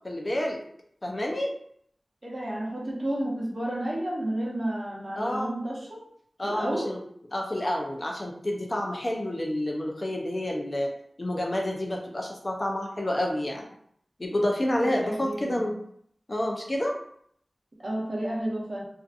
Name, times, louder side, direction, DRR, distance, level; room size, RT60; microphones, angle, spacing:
voice 1, 0.0-0.6 1.0-1.5 5.2-5.5 6.4-7.0 7.3-10.9 11.2-13.7 14.2-15.8 16.3-17.0, left 1 dB, 40° left, 0 dB, 0.5 m, -29 dB
voice 2, 2.2-6.0 6.4-6.9 14.8-15.7 17.8-18.9, right 1 dB, 45° right, -3 dB, 0.8 m, -31 dB
2.5 x 2.5 x 2.4 m, 0.66 s
wide cardioid pair, 50°, 0 cm